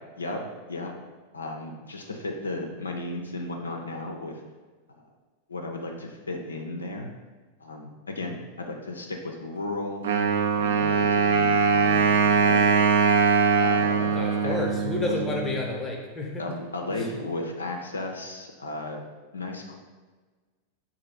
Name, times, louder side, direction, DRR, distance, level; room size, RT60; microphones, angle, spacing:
voice 1, 1.3-4.3 4.9-5.0 5.5-7.1 7.6-10.0 10.5-12.9 13.5-14.5 15.0-15.2 16.4-19.0 19.3-19.8, left 2 dB, 75° left, 2 dB, 0.4 m, -34 dB
Wind instrument woodwind instrument, 10.0-15.7, right 5 dB, 60° right, 0.5 m, -22 dB
voice 2, 14.1-16.4 16.9-17.0, left 3 dB, 15° left, -1 dB, 0.8 m, -30 dB
3.9 x 2.4 x 4.5 m, 1.4 s
figure-of-eight pair, 90°, 0 cm